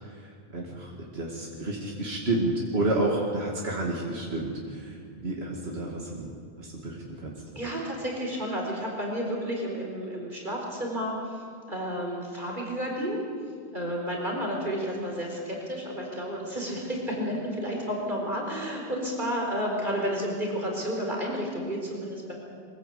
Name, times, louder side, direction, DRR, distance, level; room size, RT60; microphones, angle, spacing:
voice 1, 0.0-7.3, right 2 dB, 80° right, -2 dB, 2.6 m, -31 dB
voice 2, 7.5-11.1 11.7-13.2 13.7-22.3, equal, 50° right, -1 dB, 4.6 m, -31 dB
23.5 x 15.0 x 8.4 m, 2.2 s
omnidirectional pair, 1.0 m